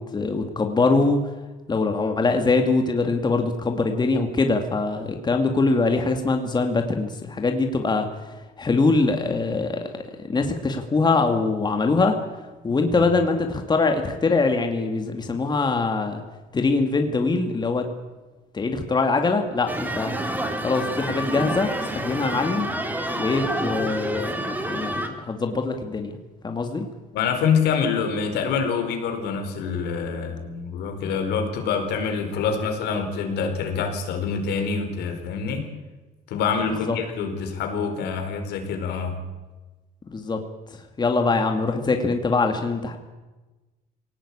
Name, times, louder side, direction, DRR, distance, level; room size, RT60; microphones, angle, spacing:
voice 1, 0.1-1.2 1.7-8.1 8.6-9.8 10.2-12.2 12.6-16.2 16.5-17.9 18.5-20.1 20.6-22.7 23.2-26.2 26.4-26.9 36.9-37.0 40.1-40.4 41.0-43.0, left 3 dB, 25° left, 5 dB, 2.2 m, -23 dB
sound 1, 19.7-25.1, right 1 dB, 10° right, 2.7 m, -28 dB
voice 2, 27.1-35.7 36.3-39.2, left 6 dB, 80° left, 5 dB, 4.6 m, -26 dB
22.0 x 18.0 x 8.7 m, 1.2 s
cardioid pair, 110°, 17 cm